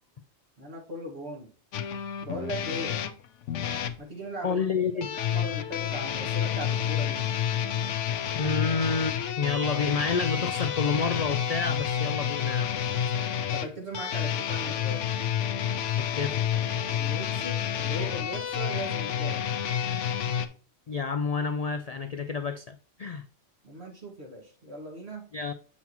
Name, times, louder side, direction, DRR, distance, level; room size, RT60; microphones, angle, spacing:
voice 1, 0.6-1.5 2.2-3.0 4.0-4.6 5.1-7.3 13.5-15.1 16.9-19.5 23.6-25.3, equal, 60° right, 2.1 m, -38 dB
sound 1, 1.7-4.0 5.0-20.5, left 9 dB, 80° left, 1.0 m, -29 dB
voice 2, 4.4-5.1 8.3-12.7 16.0-16.4 20.9-23.2 25.3-25.5, left 5 dB, 60° left, 0.4 m, -29 dB
7.2 x 5.6 x 3.0 m
omnidirectional pair, 1.2 m